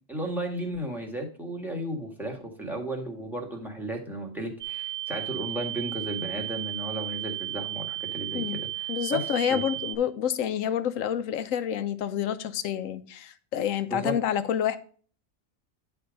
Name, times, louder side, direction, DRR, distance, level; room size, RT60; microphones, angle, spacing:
voice 1, 0.1-9.6 13.9-14.1, right 1 dB, ahead, 1.7 m, -34 dB
sound 1, 4.6-10.0, right 15 dB, 65° right, 1.3 m, -34 dB
voice 2, 8.9-14.8, left 9 dB, 80° left, 1.1 m, -28 dB
10.5 x 3.5 x 5.1 m
omnidirectional pair, 1.3 m